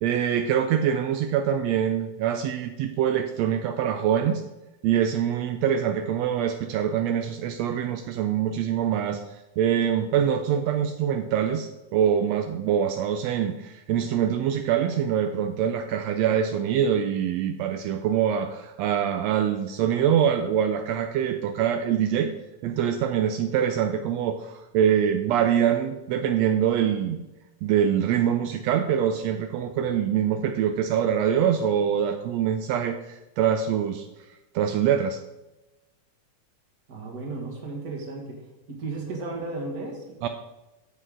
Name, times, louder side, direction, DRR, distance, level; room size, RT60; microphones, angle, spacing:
voice 1, 0.0-4.4 4.8-22.3 22.6-27.2 27.6-34.1 34.5-35.2 40.2-40.3, right 9 dB, 85° right, 6 dB, 1.5 m, -24 dB
voice 2, 36.9-38.4 38.7-40.3, right 3 dB, 35° right, 0 dB, 1.7 m, -34 dB
9.6 x 7.7 x 3.8 m, 1.0 s
omnidirectional pair, 3.6 m